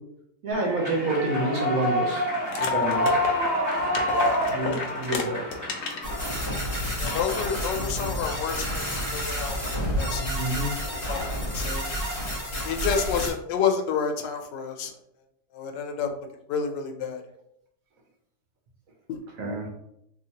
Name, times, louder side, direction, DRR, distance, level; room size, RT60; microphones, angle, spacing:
voice 1, 0.4-2.3 2.6-3.2 4.5-5.5 10.2-10.7 19.4-19.7, right 2 dB, 60° right, -1 dB, 1.1 m, -28 dB
Human voice / Clapping / Cheering, 0.5-6.5, left 1 dB, 10° right, 1.1 m, -27 dB
sound 1, 2.5-6.1 6.5-6.6 7.0-7.7, left 4 dB, 70° left, 0.9 m, -33 dB
voice 2, 4.1-4.8 7.0-9.6 10.0-10.3 11.1-11.9 12.6-14.9 15.5-16.1 16.5-17.2 19.1-19.2, left 7 dB, 90° left, 4 dB, 1.3 m, -29 dB
sound 2, 6.0-13.3, equal, 30° left, 1.7 m, -30 dB
3.2 x 3.1 x 2.8 m, 0.78 s
omnidirectional pair, 1.9 m